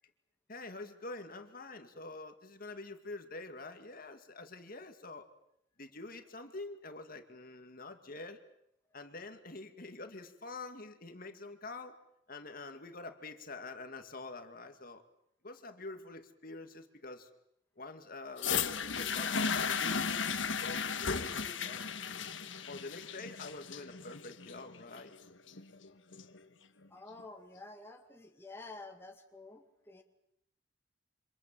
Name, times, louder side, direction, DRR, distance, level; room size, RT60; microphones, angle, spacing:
voice 1, 0.5-5.3 5.8-8.4 8.9-11.9 12.3-15.0 15.4-17.3 17.8-21.9 22.7-25.1, left 2 dB, 45° left, 6 dB, 2.2 m, -46 dB
sound 1, 18.4-26.4 27.2-27.3, left 6 dB, 75° left, 1.5 m, -35 dB
voice 2, 26.9-30.0, left 3 dB, 10° left, 3 dB, 2.0 m, -50 dB
28.0 x 26.0 x 7.6 m, 0.75 s
head